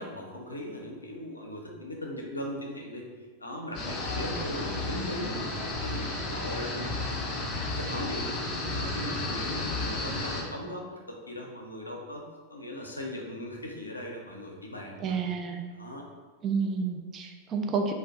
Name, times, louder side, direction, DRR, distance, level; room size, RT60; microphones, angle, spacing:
voice 1, 0.0-3.0 3.4-7.5 7.8-8.4 8.7-12.2 12.5-15.2 15.7-16.0, left 1 dB, 80° left, 0 dB, 0.5 m, -38 dB
sound 1, 3.7-10.4, left 2 dB, 30° left, 0.6 m, -33 dB
voice 2, 15.0-15.6 16.4-17.9, right 5 dB, 30° right, 4 dB, 0.3 m, -30 dB
2.5 x 2.1 x 3.5 m, 1.4 s
figure-of-eight pair, 90°, 0 cm